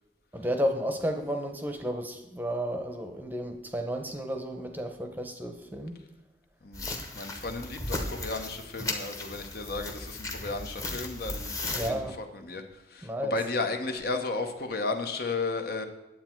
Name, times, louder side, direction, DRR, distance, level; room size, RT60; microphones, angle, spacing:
voice 1, 0.3-5.9 11.7-12.2 13.0-13.4, equal, 10° right, 5 dB, 0.8 m, -32 dB
voice 2, 6.6-12.6 12.9-15.9, left 3 dB, 55° left, 6 dB, 0.9 m, -34 dB
sound 1, 6.7-11.9, left 2 dB, 20° left, 1.0 m, -36 dB
9.6 x 8.0 x 4.5 m, 1.0 s
head